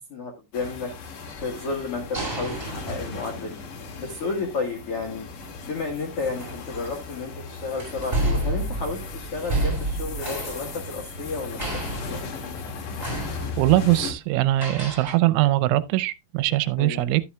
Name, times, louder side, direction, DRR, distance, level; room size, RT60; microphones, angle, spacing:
voice 1, 0.1-0.9 1.4-3.6 4.0-5.2 5.6-12.2 16.8-17.1, left 3 dB, 85° left, 1.3 m, -32 dB
sound 1, 0.5-14.1, left 4 dB, 55° left, 2.8 m, -37 dB
sound 2, 1.3-3.9 5.3-5.5 6.3-7.2 7.8-11.3 11.6-12.6 13.0-14.0 14.6-15.1, right 1 dB, 10° right, 6.9 m, -31 dB
voice 2, 13.6-17.2, right 16 dB, 90° right, 3.1 m, -21 dB
12.5 x 8.7 x 2.3 m
omnidirectional pair, 5.3 m